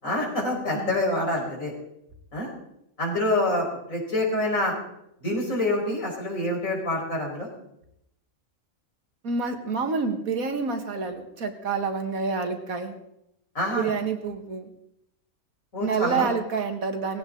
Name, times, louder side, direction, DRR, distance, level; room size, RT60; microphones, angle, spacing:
voice 1, 0.0-1.7 2.3-2.5 3.0-4.7 5.2-7.5 13.6-13.9 15.7-16.3, left 1 dB, 70° left, -2 dB, 5.7 m, -26 dB
voice 2, 9.2-12.9 13.7-14.7 15.8-17.2, right 5 dB, 90° right, 6 dB, 2.2 m, -28 dB
19.5 x 16.0 x 3.9 m, 0.79 s
omnidirectional pair, 1.4 m